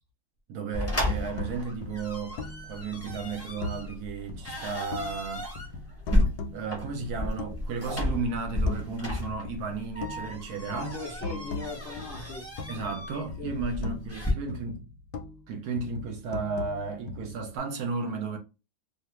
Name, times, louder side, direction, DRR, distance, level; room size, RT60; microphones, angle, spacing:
voice 1, 0.5-2.4 2.6-5.5 6.5-11.0 12.7-14.8 15.5-18.4, right 4 dB, 70° right, 1.0 m, -34 dB
sound 1, 0.7-14.3, left 1 dB, 15° left, 0.5 m, -33 dB
sound 2, 1.1-4.0 4.3-5.3 5.5-7.8 8.1-9.1 9.4-13.0 13.3-15.5 15.8-17.6, left 3 dB, 70° left, 1.0 m, -40 dB
voice 2, 10.7-12.6 13.4-13.6, left 3 dB, 90° left, 0.5 m, -39 dB
2.6 x 2.4 x 3.0 m
omnidirectional pair, 1.9 m